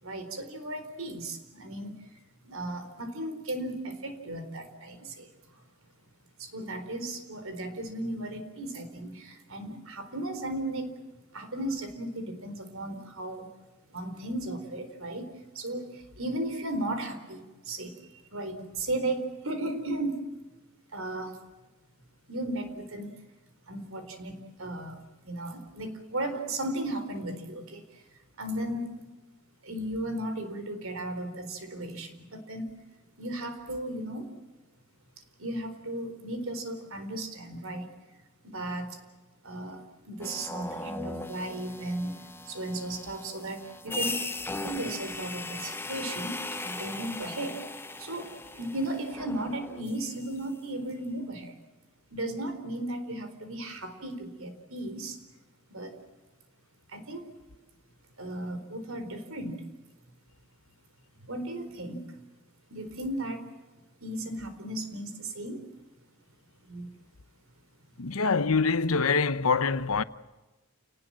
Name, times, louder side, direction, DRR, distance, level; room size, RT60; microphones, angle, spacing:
voice 1, 0.0-2.0 2.5-5.3 6.4-11.0 11.3-13.5 13.9-15.3 15.5-17.9 18.3-20.2 20.9-21.4 22.3-23.1 23.7-25.0 25.2-27.8 28.4-29.0 29.6-32.7 33.2-34.3 35.4-37.9 38.4-39.0 39.4-42.2 42.5-44.2 44.6-47.6 48.0-51.6 52.1-55.2 55.7-56.0 56.9-57.3 58.2-59.6 61.3-62.0 62.7-63.5 64.0-65.6 66.7-66.9, right 1 dB, 70° right, 4.2 m, -35 dB
sound 1, 40.2-50.3, left 2 dB, 10° left, 1.1 m, -38 dB
voice 2, 68.0-70.0, left 4 dB, 80° left, 0.9 m, -25 dB
29.5 x 19.0 x 7.6 m
head